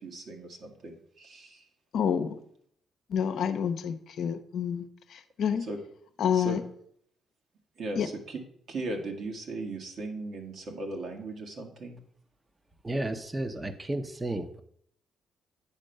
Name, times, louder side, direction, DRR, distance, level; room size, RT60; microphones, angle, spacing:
voice 1, 0.0-1.7 5.6-5.8 6.3-6.6 7.8-8.4 8.7-12.0, right 2 dB, 60° right, 3 dB, 1.7 m, -37 dB
voice 2, 1.9-2.3 3.1-5.6 6.2-6.6 8.0-8.1, left 8 dB, 70° left, 9 dB, 0.7 m, -28 dB
voice 3, 12.8-14.6, right 1 dB, 20° right, 10 dB, 0.8 m, -32 dB
8.9 x 4.5 x 6.5 m, 0.66 s
cardioid pair, 90°, 0 cm